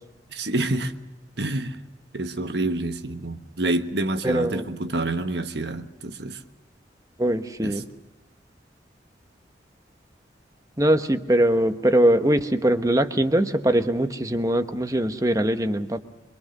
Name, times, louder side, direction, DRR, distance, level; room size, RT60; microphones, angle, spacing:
voice 1, 0.3-0.9 1.4-1.8 2.1-6.4 7.6-7.8, right 2 dB, 70° right, 1.3 m, -27 dB
voice 2, 4.2-4.6 7.2-7.9 10.8-16.0, right 1 dB, 20° right, 1.1 m, -22 dB
25.5 x 22.5 x 6.7 m
head